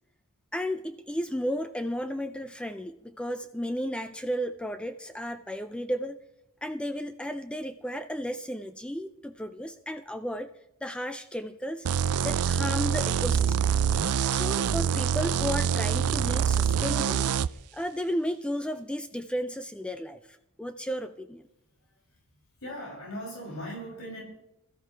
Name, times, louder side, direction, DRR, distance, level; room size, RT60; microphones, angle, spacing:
voice 1, 0.5-6.2 6.6-10.5 10.8-11.9 12.2-13.7 14.3-17.3 17.7-21.4, equal, 5° left, 9 dB, 0.4 m, -33 dB
sound 1, 11.8-17.5, right 8 dB, 75° right, 0.4 m, -25 dB
voice 2, 21.8-22.2 22.6-24.2, equal, 65° left, -3 dB, 6.6 m, -39 dB
21.5 x 13.5 x 3.3 m, 0.85 s
head